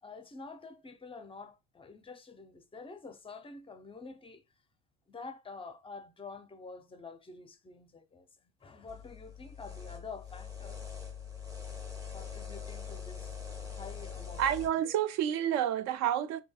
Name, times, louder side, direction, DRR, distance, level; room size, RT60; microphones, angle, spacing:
voice 1, 0.0-4.4 5.1-10.8 12.1-14.5 14.8-14.9, left 4 dB, 15° left, 0.5 m, -48 dB
sound 1, 8.9-14.7, left 7 dB, 10° right, 1.0 m, -43 dB
voice 2, 14.4-16.4, right 10 dB, 55° right, 0.5 m, -29 dB
2.7 x 2.6 x 2.3 m
hypercardioid pair, 75°, 33 cm